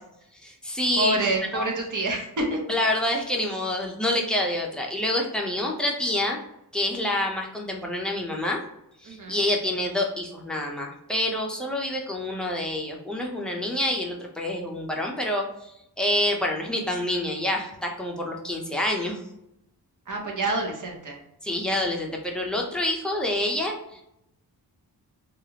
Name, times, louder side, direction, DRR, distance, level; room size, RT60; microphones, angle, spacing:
voice 1, 0.4-1.2 1.5-1.7 2.7-6.4 6.7-8.6 9.0-19.2 21.4-24.0, left 1 dB, ahead, -1 dB, 0.5 m, -27 dB
voice 2, 1.0-2.6 9.1-9.4 20.1-21.2, right 2 dB, 50° right, 1 dB, 0.9 m, -27 dB
3.3 x 2.4 x 2.8 m, 0.82 s
wide cardioid pair, 130°, 39 cm